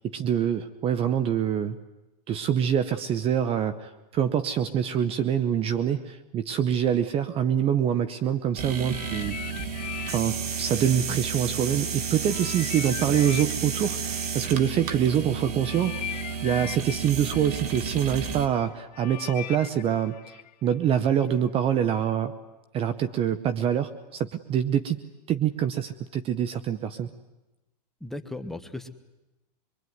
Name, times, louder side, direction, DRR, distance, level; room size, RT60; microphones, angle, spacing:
voice 1, 0.0-1.8 2.3-9.4 10.1-16.1 16.4-22.3 22.7-25.0 25.3-27.1, right 9 dB, 25° right, 13 dB, 0.9 m, -25 dB
sound 1, 8.6-18.5, right 6 dB, 70° right, 2.5 m, -32 dB
sound 2, 8.9-11.8 12.3-21.3 22.0-22.1, left 12 dB, 90° left, 1.1 m, -41 dB
voice 2, 28.0-28.9, left 2 dB, ahead, 7 dB, 1.4 m, -36 dB
25.5 x 23.5 x 9.5 m, 0.98 s
supercardioid pair, 140°, 21 cm